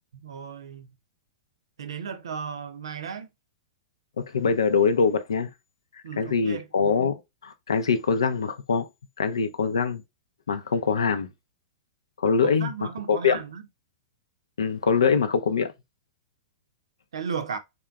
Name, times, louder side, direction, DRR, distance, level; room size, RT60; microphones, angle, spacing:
voice 1, 0.2-0.9 1.8-3.3 6.0-6.7 12.4-13.7 17.1-17.6, right 6 dB, 75° right, 0.6 m, -35 dB
voice 2, 4.2-5.5 6.2-8.9 9.2-10.0 10.5-11.3 12.2-12.7 13.1-13.4 14.6-15.7, left 5 dB, 80° left, 0.5 m, -23 dB
3.6 x 2.8 x 2.3 m
hypercardioid pair, 105°, 3 cm